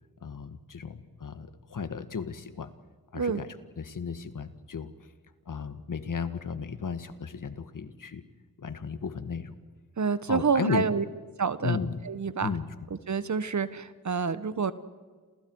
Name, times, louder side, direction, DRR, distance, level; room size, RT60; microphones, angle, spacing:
voice 1, 0.2-2.7 3.1-3.5 3.8-4.9 5.5-8.2 8.6-9.6 10.3-10.8 11.6-12.0 12.4-12.6, left 6 dB, 60° left, 10 dB, 1.7 m, -34 dB
voice 2, 10.0-11.0 11.4-11.8 12.0-12.5 12.9-14.7, right 5 dB, 55° right, 13 dB, 1.3 m, -28 dB
30.0 x 28.0 x 4.8 m, 1.5 s
cardioid pair, 45°, 35 cm